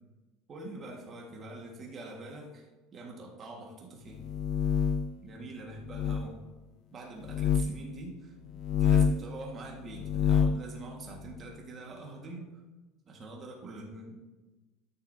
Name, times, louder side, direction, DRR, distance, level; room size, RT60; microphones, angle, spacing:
voice 1, 0.5-4.2 5.2-6.4 6.9-8.3 8.7-12.5 13.1-14.2, right 2 dB, 25° right, 0 dB, 1.6 m, -44 dB
sound 1, 4.2-5.2 5.9-6.2 7.2-7.7 8.6-9.3 9.9-10.6, left 7 dB, 45° left, 0.4 m, -26 dB
12.5 x 6.7 x 2.7 m, 1.2 s
cardioid pair, 155°, 0 cm